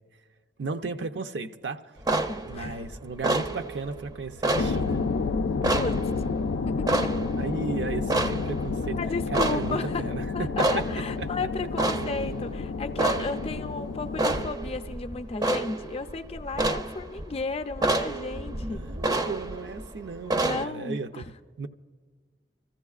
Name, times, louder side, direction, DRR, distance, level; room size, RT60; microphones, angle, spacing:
voice 1, 0.6-2.0 2.4-5.0 7.4-9.0 9.3-10.7 11.2-11.5 18.6-21.2 21.6-21.7, right 4 dB, 70° right, 0.5 m, -35 dB
sound 1, 2.0-20.7, right 2 dB, 20° right, 0.5 m, -30 dB
voice 2, 2.1-2.8 5.7-6.3 6.7-7.1 8.9-10.0 10.3-18.8 20.4-21.3, left 3 dB, 35° left, 0.5 m, -34 dB
Big Reverb Kick, 4.5-14.5, left 4 dB, 90° left, 0.4 m, -30 dB
26.0 x 15.0 x 2.4 m
head